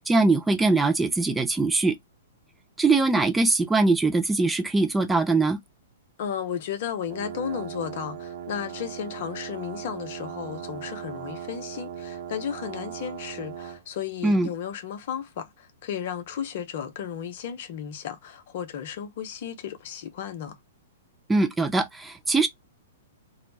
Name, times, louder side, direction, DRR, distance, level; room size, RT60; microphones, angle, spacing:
voice 1, 0.0-2.0 2.8-5.6 14.2-14.5 21.3-22.5, right 3 dB, 10° right, 0.3 m, -22 dB
voice 2, 6.2-20.6, left 8 dB, 50° left, 0.5 m, -34 dB
sound 1, 7.1-13.8, right 9 dB, 60° right, 0.6 m, -38 dB
2.4 x 2.0 x 3.1 m
figure-of-eight pair, 110°, 0 cm